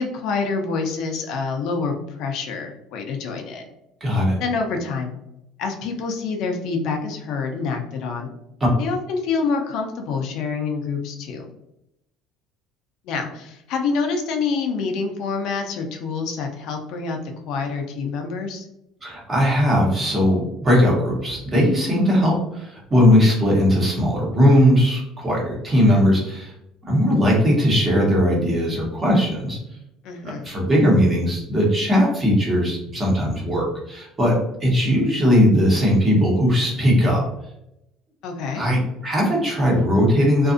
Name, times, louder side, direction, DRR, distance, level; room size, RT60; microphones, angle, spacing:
voice 1, 0.0-3.7 4.4-5.1 5.6-8.3 8.8-11.5 13.0-18.7 30.0-30.5 38.2-38.6, left 4 dB, 65° left, 3 dB, 0.5 m, -27 dB
voice 2, 4.0-4.4 19.0-26.5 26.9-29.6 30.2-37.2 38.6-40.5, equal, 20° right, -3 dB, 1.0 m, -19 dB
2.6 x 2.4 x 2.4 m, 0.84 s
cardioid pair, 140°, 0 cm